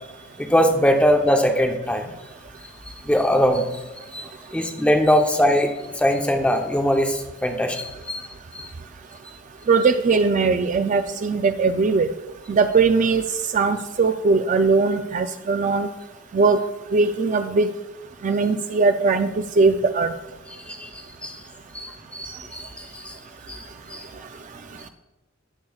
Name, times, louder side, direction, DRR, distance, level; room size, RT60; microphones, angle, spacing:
voice 1, 0.4-2.1 3.0-3.6 4.1-4.3 4.5-5.7 6.0-8.2 8.5-8.7 20.7-21.4 21.7-23.2 23.5-24.0, equal, 5° left, 3 dB, 0.8 m, -21 dB
voice 2, 9.7-12.1 12.5-13.2 13.5-15.9 16.3-16.6 16.9-17.7 18.2-20.1, right 4 dB, 40° right, 8 dB, 0.3 m, -20 dB
19.5 x 6.9 x 2.4 m, 1.1 s
head